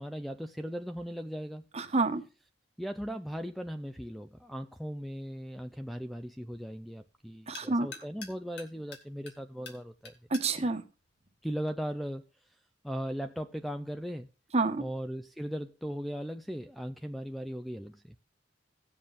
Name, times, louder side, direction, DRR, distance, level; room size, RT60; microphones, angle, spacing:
voice 1, 0.0-1.6 2.8-10.1 11.4-12.6 12.8-14.3 14.8-18.1, equal, ahead, 0.4 m, -38 dB
voice 2, 1.7-2.2 7.5-7.9 10.3-10.8 14.5-14.8, right 3 dB, 35° right, 1.1 m, -28 dB
sound 1, 7.1-12.1, left 5 dB, 60° left, 2.1 m, -52 dB
17.5 x 7.4 x 2.5 m
head